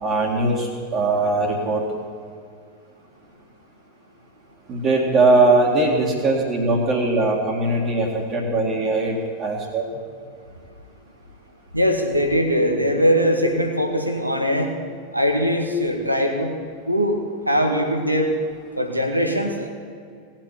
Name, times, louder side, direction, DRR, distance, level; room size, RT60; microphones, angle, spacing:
voice 1, 0.0-1.8 4.7-9.8, right 2 dB, 30° right, -5 dB, 2.2 m, -20 dB
voice 2, 11.7-14.7 15.1-16.5 16.9-17.2 17.5-18.3 18.8-19.7, equal, 90° right, 3 dB, 1.7 m, -21 dB
17.5 x 7.5 x 9.7 m, 2.2 s
figure-of-eight pair, 90°, 0 cm